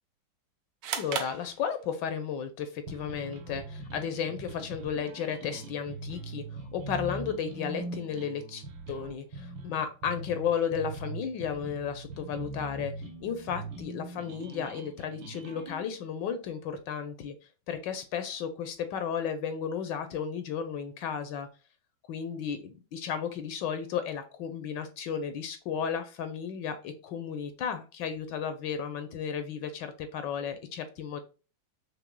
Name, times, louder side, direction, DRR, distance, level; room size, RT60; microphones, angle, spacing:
sound 1, 0.8-2.2, right 7 dB, 65° right, 1.0 m, -36 dB
voice 1, 0.9-12.9 13.2-17.3 17.7-21.5 22.1-31.2, left 7 dB, 75° left, 1.2 m, -34 dB
sound 2, 2.9-15.8, right 3 dB, 85° right, 1.6 m, -41 dB
5.9 x 3.0 x 2.2 m
omnidirectional pair, 2.1 m